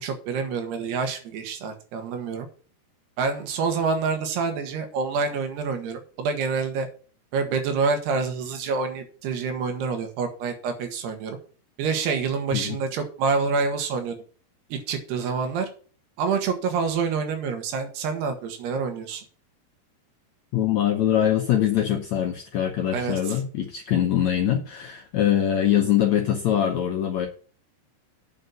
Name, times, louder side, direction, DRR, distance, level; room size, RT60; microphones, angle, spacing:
voice 1, 0.0-2.5 3.2-6.9 7.3-11.4 11.8-14.2 14.7-15.7 16.2-19.2 22.9-23.2, right 5 dB, 80° right, 6 dB, 3.7 m, -27 dB
voice 2, 20.5-27.3, left 10 dB, 80° left, 4 dB, 1.6 m, -23 dB
8.8 x 5.7 x 7.6 m, 0.40 s
omnidirectional pair, 4.6 m